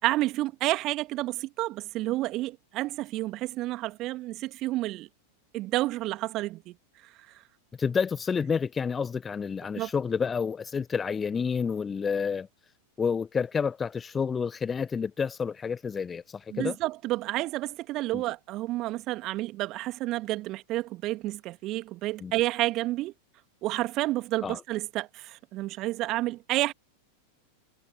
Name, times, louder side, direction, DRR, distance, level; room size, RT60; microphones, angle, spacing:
voice 1, 0.0-5.1 5.5-6.8 7.0-7.3 9.8-9.9 16.5-23.1 23.6-26.7, right 17 dB, 35° right, 2.3 m, -30 dB
voice 2, 7.8-12.5 13.0-16.8 18.1-18.2 22.2-22.3 24.4-24.6, left 6 dB, 20° left, 1.3 m, -29 dB
figure-of-eight pair, 90°, 0 cm